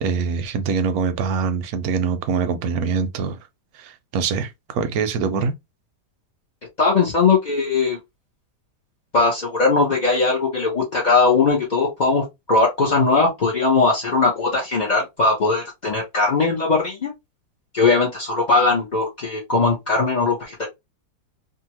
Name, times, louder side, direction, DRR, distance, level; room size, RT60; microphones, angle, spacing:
voice 1, 0.0-3.4 3.7-5.5, right 5 dB, 70° right, 1.0 m, -24 dB
voice 2, 6.8-8.0 9.1-17.1 17.7-20.7, left 3 dB, 40° left, 0.6 m, -19 dB
2.8 x 2.5 x 2.9 m
omnidirectional pair, 1.8 m